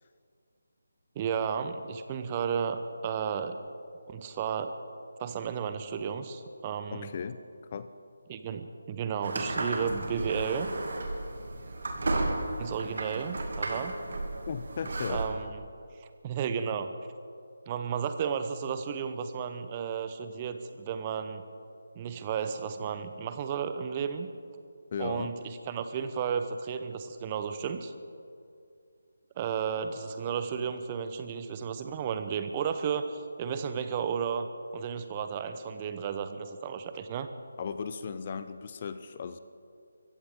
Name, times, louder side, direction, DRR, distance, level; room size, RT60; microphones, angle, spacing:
voice 1, 1.2-3.6 4.1-4.7 5.2-7.1 8.3-10.7 12.6-13.9 15.1-15.6 16.0-16.9 17.7-21.4 21.9-24.3 25.0-27.9 29.4-34.5 34.7-37.3, right 7 dB, 25° right, 9 dB, 0.8 m, -33 dB
voice 2, 6.9-7.4 7.7-7.9 14.5-15.3 24.9-25.3 37.6-39.4, left 6 dB, 35° left, 12 dB, 0.6 m, -36 dB
sound 1, 9.2-15.3, right 2 dB, 60° right, 2.4 m, -33 dB
23.5 x 15.5 x 3.7 m, 2.4 s
figure-of-eight pair, 155°, 0 cm